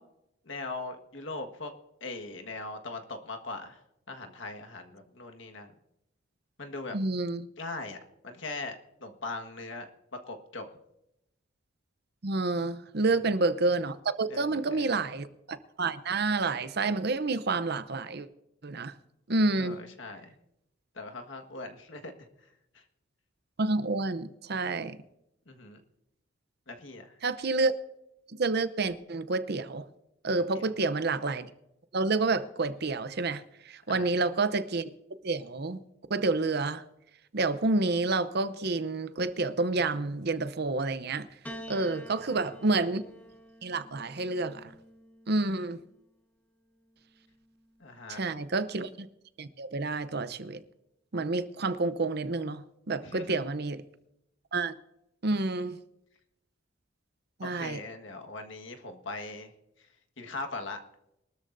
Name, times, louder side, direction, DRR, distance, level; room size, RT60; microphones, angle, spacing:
voice 1, 0.4-1.7 2.0-3.8 4.1-5.7 6.6-7.0 7.6-8.0 8.2-9.9 10.3-10.7 14.3-14.9 19.6-20.4 20.9-22.1 22.7-22.8 25.5-25.8 26.7-27.1 30.5-30.6 33.9-34.1 42.3-42.5 47.8-48.2 53.0-53.4 57.4-59.5 60.2-60.8, left 3 dB, 70° left, 1.6 m, -40 dB
voice 2, 6.9-7.5 12.2-18.3 18.6-18.9 19.3-19.8 23.6-25.0 27.2-27.7 28.3-29.9 30.2-31.5 31.9-34.8 35.2-35.8 36.1-36.8 37.3-41.3 41.7-43.0 43.6-44.7 45.3-45.8 48.1-49.1 49.4-50.6 51.1-53.8 54.5-54.7 55.2-55.8 57.4-57.8, right 3 dB, 55° right, 0.7 m, -29 dB
Piano, 41.4-45.9 47.0-47.7, equal, 10° left, 1.1 m, -48 dB
22.5 x 13.0 x 2.7 m
head